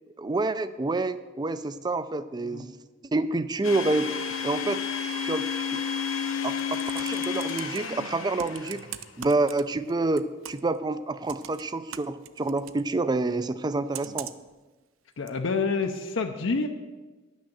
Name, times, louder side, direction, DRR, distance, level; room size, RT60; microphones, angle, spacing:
voice 1, 0.2-2.8 3.1-4.1 4.4-4.8 5.2-5.8 6.4-8.9 9.2-14.3, right 2 dB, 20° right, 13 dB, 0.4 m, -28 dB
voice 2, 2.4-2.7 14.0-14.2 15.2-16.7, left 4 dB, 65° left, 5 dB, 0.6 m, -28 dB
Domestic sounds home sounds, 3.6-9.1, left 7 dB, 85° left, 1.0 m, -31 dB
Computer keyboard, 6.4-7.8 8.4-9.9 10.2-10.8 11.3-12.8 13.9-14.5 15.3-15.4, right 11 dB, 80° right, 0.5 m, -40 dB
9.9 x 6.3 x 7.3 m, 1.2 s
head